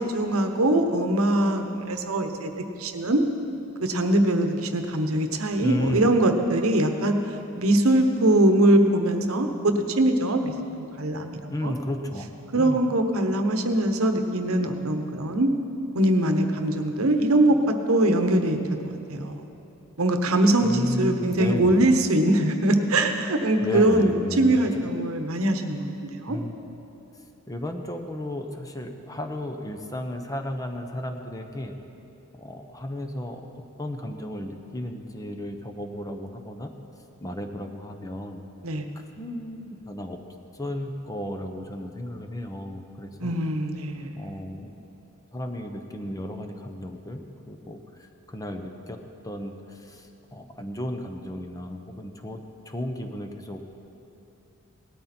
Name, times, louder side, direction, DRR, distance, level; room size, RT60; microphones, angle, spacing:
voice 1, 0.1-2.5 2.8-3.2 3.8-7.1 7.6-10.5 11.0-11.7 12.5-15.5 15.9-17.6 17.9-18.6 19.1-19.5 20.0-26.4 38.6-38.9 43.2-44.1, right 1 dB, 75° right, 6 dB, 1.0 m, -22 dB
voice 2, 5.6-6.1 11.5-12.3 12.5-12.8 20.6-21.9 23.6-24.8 26.3-26.7 27.5-31.7 32.4-33.4 33.8-36.7 37.2-38.4 39.2-40.2 40.5-43.4 44.2-44.7 45.3-47.2 47.5-49.0 49.2-52.4 52.7-53.7, left 1 dB, 15° left, 5 dB, 0.8 m, -33 dB
18.0 x 13.0 x 4.4 m, 3.0 s
head